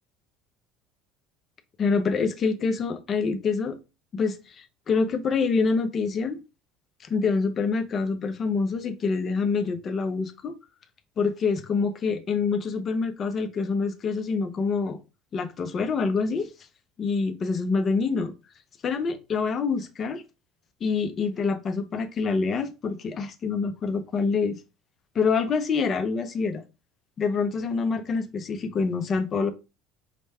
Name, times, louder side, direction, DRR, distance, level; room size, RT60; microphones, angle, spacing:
voice 1, 1.8-3.8 4.1-6.4 7.0-10.6 11.2-15.0 15.3-16.5 17.0-18.3 18.8-20.2 20.8-24.6 25.1-26.6 27.2-29.5, left 4 dB, 40° left, 0.6 m, -26 dB
5.0 x 2.1 x 3.2 m
supercardioid pair, 100°, 0 cm